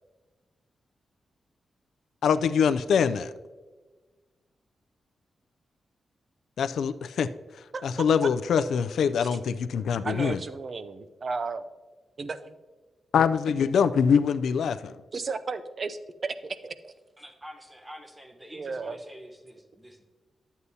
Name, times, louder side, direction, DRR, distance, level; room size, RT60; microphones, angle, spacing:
voice 1, 2.2-3.3 6.6-7.3 7.8-10.4 13.1-15.0, left 7 dB, 85° left, 12 dB, 0.3 m, -24 dB
voice 2, 7.7-8.1 9.2-9.3 10.0-11.7 12.2-12.6 15.1-16.9 18.5-19.0, right 4 dB, 45° right, 12 dB, 0.4 m, -34 dB
voice 3, 17.2-20.0, equal, 15° right, 3 dB, 1.0 m, -47 dB
11.0 x 8.1 x 2.7 m, 1.3 s
wide cardioid pair, 115°, 0 cm